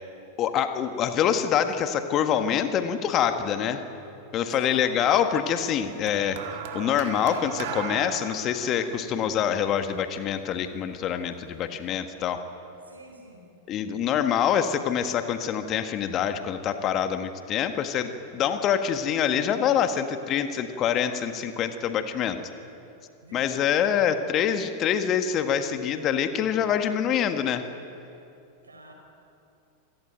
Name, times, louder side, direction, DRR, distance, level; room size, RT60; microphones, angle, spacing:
voice 1, 0.4-3.8 4.3-12.4 13.7-22.4 23.3-27.7, left 8 dB, 35° left, 8 dB, 1.7 m, -25 dB
voice 2, 4.5-5.0 12.8-13.5 23.2-23.7 28.6-28.9, right 2 dB, 75° right, 3 dB, 5.2 m, -46 dB
sound 1, 6.1-10.5 11.4-11.7, right 8 dB, 50° right, 2.0 m, -37 dB
27.5 x 18.0 x 9.2 m, 2.7 s
figure-of-eight pair, 90°, 0 cm